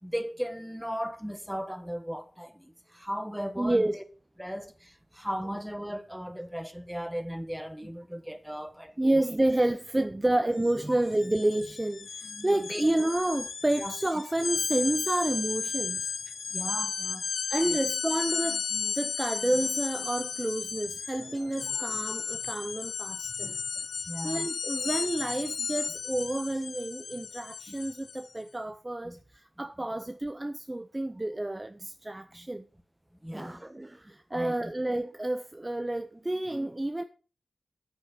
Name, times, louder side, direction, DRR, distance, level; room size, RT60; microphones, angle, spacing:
voice 1, 0.0-4.0 4.4-9.2 12.5-12.8 13.8-13.9 16.5-17.3 17.6-17.8 21.7-21.8 24.1-24.5 27.7-27.8 29.0-29.2 32.3-32.5 33.2-33.7 34.3-34.7, equal, 5° right, 1.3 m, -37 dB
voice 2, 3.6-3.9 9.0-16.1 17.5-23.6 24.2-32.6 33.3-37.0, right 1 dB, 20° right, 0.6 m, -30 dB
sound 1, 10.6-10.7 11.0-28.3, left 6 dB, 90° left, 0.6 m, -34 dB
8.7 x 8.1 x 5.1 m
cardioid pair, 65°, 0 cm